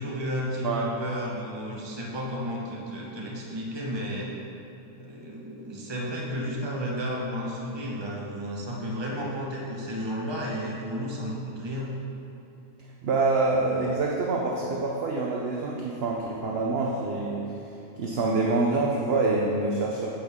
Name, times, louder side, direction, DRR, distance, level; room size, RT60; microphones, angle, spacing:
voice 1, 0.0-4.3 5.0-11.9, equal, 20° right, -4 dB, 1.2 m, -32 dB
voice 2, 13.0-17.5 18.0-20.1, right 3 dB, 55° right, -2 dB, 0.9 m, -26 dB
9.9 x 8.0 x 3.6 m, 2.9 s
omnidirectional pair, 1.4 m